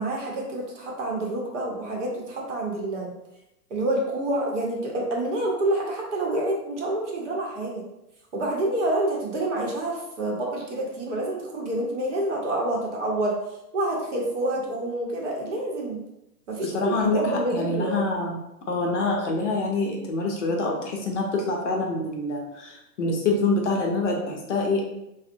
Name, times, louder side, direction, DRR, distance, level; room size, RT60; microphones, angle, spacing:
voice 1, 0.0-3.1 3.7-7.8 8.3-13.4 13.7-16.0 16.5-18.0 24.2-24.4, right 1 dB, 50° right, -1 dB, 0.8 m, -28 dB
voice 2, 16.6-18.4 18.7-24.8, left 2 dB, 50° left, -1 dB, 0.6 m, -26 dB
3.6 x 2.1 x 2.5 m, 0.89 s
hypercardioid pair, 170°, 47 cm